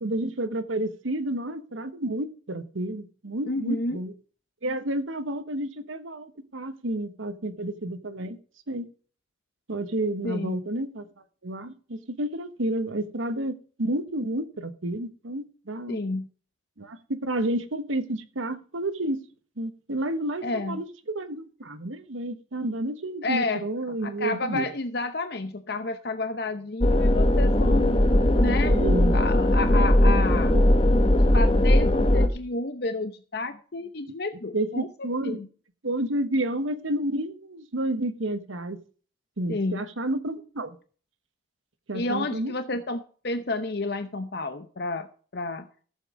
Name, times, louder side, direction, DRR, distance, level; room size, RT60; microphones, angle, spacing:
voice 1, 0.0-4.1 4.6-8.4 8.7-8.9 9.7-11.1 11.4-16.0 16.8-19.2 19.6-24.7 28.2-29.2 30.5-30.7 34.1-34.2 34.5-35.4 35.8-38.8 39.4-40.8 41.9-42.8, right 1 dB, 80° right, 1.2 m, -30 dB
voice 2, 3.5-4.0 10.2-10.6 15.9-16.3 20.4-20.8 23.2-23.6 23.9-28.8 29.1-30.6 31.1-34.9 35.2-35.5 39.5-39.8 41.9-45.1 45.3-45.7, left 2 dB, 55° left, 0.8 m, -30 dB
sound 1, 26.8-32.3, left 1 dB, 25° left, 1.0 m, -19 dB
14.0 x 7.5 x 4.9 m
head